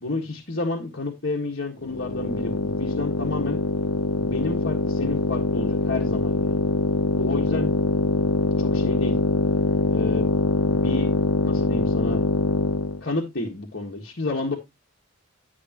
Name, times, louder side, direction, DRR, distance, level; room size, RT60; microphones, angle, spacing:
voice 1, 0.0-3.6 4.2-6.6 7.1-7.7 8.6-9.2 9.9-10.3 10.6-11.2 11.4-12.2 13.0-14.6, left 2 dB, 50° left, 1.7 m, -30 dB
sound 1, 1.8-13.0, left 3 dB, 80° left, 0.8 m, -23 dB
11.5 x 7.0 x 3.0 m
head